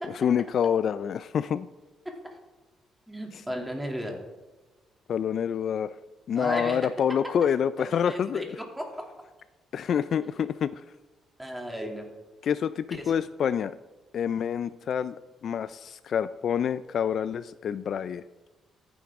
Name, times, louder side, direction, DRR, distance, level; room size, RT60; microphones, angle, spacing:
voice 1, 0.1-1.7 5.1-5.9 6.3-8.5 9.7-10.8 12.4-13.7 14.1-15.1 15.4-18.2, left 8 dB, 60° left, 15 dB, 0.4 m, -27 dB
voice 2, 3.1-4.2 6.3-6.9 7.8-8.9 11.4-12.1 12.9-13.1, equal, 5° right, 1 dB, 2.5 m, -35 dB
14.5 x 10.0 x 3.6 m, 1.2 s
cardioid pair, 90°, 0 cm